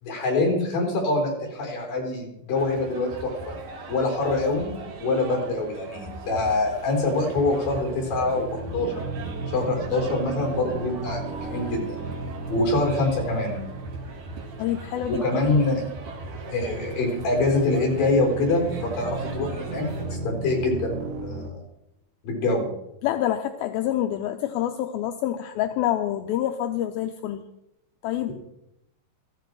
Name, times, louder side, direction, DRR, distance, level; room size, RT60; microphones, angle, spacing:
voice 1, 0.0-3.3 3.9-9.0 9.5-12.0 12.5-13.6 15.1-15.8 16.5-21.6 22.2-22.7, left 2 dB, 55° left, 1 dB, 6.0 m, -25 dB
sound 1, 2.5-20.2, right 3 dB, 55° right, 3.5 m, -40 dB
sound 2, 5.8-21.5, left 1 dB, 10° left, 8.1 m, -48 dB
sound 3, 7.8-21.5, right 3 dB, 75° right, 1.9 m, -36 dB
voice 2, 14.6-15.2 23.0-27.4 28.0-28.3, left 12 dB, 80° left, 6 dB, 2.3 m, -27 dB
17.0 x 14.5 x 4.7 m, 0.84 s
omnidirectional pair, 4.9 m